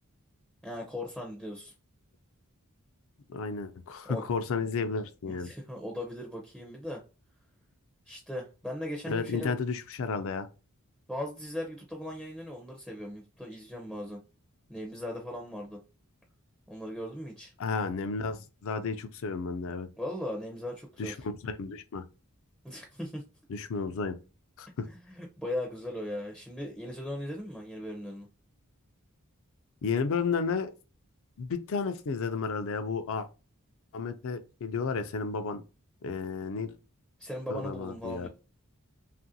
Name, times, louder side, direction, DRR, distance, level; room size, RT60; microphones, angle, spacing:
voice 1, 0.6-1.7 4.1-4.2 5.3-7.0 8.1-9.5 11.1-14.2 14.7-15.8 16.7-17.5 20.0-21.1 22.6-23.2 24.9-28.3 37.2-38.3, left 1 dB, ahead, 0.5 m, -38 dB
voice 2, 3.3-5.5 9.1-10.5 17.6-19.9 21.0-22.0 23.5-24.2 24.6-24.9 29.8-30.7 31.4-33.3 33.9-35.6 36.0-36.7 37.5-38.3, left 5 dB, 65° left, 0.4 m, -32 dB
2.9 x 2.5 x 2.7 m
head